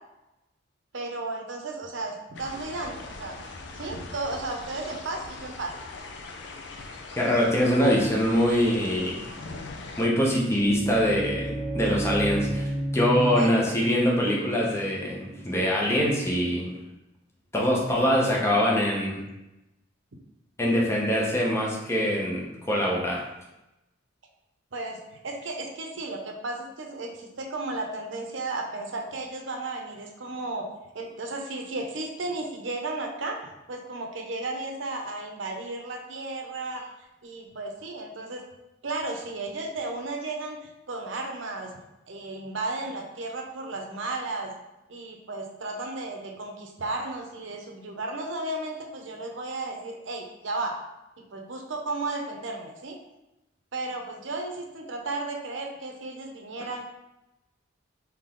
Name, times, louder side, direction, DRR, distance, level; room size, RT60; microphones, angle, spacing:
voice 1, 0.9-3.4 3.7-5.7 7.8-8.1 11.8-11.9 13.3-13.7 14.3-14.4 24.7-30.7 30.9-33.4 33.7-36.8 37.2-38.4 38.8-41.7 42.1-44.5 44.9-50.8 51.2-53.0 53.7-56.9, right 2 dB, 70° right, 2 dB, 0.7 m, -34 dB
sound 1, 2.3-10.1, left 3 dB, 60° left, 0.5 m, -41 dB
voice 2, 7.2-9.3 10.0-16.7 17.5-19.2 20.6-23.2, equal, 15° left, -3 dB, 0.8 m, -24 dB
sound 2, 10.4-16.2, right 1 dB, 15° right, 0.4 m, -33 dB
3.7 x 2.9 x 3.7 m, 0.95 s
head